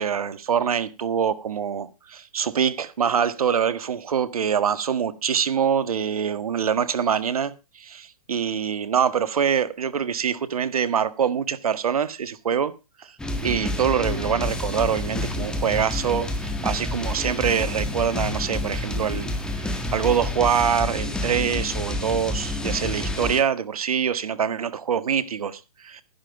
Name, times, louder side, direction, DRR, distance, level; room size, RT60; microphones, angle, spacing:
voice 1, 0.0-12.7 13.0-13.1 13.4-19.3 19.6-26.0, right 7 dB, 70° right, 1.7 m, -24 dB
sound 1, 13.2-23.4, left 1 dB, 5° left, 1.7 m, -28 dB
11.5 x 11.5 x 4.8 m
hypercardioid pair, 140°, 19 cm